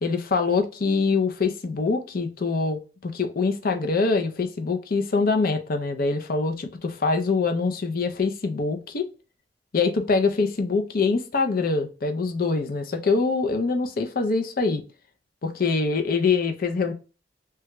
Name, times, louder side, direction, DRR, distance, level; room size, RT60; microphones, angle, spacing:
voice 1, 0.0-9.1 9.7-14.8 15.4-16.9, left 4 dB, 55° left, 0.5 m, -24 dB
3.4 x 2.3 x 2.9 m
head